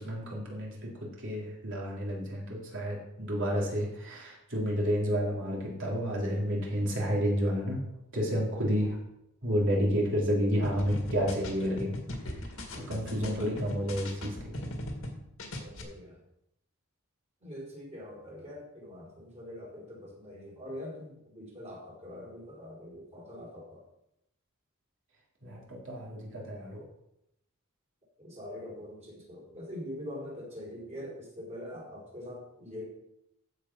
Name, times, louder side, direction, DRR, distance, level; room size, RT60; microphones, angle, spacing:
voice 1, 0.0-7.8 8.1-9.0 9.4-11.9 12.9-14.6 25.4-26.8, equal, 55° right, -3 dB, 3.4 m, -30 dB
sound 1, 10.6-15.1 15.4-15.8, left 1 dB, 65° left, 2.0 m, -38 dB
voice 2, 15.6-16.2 17.4-23.9 28.2-32.9, left 1 dB, 30° right, -6 dB, 4.4 m, -43 dB
15.0 x 5.1 x 5.5 m, 0.81 s
head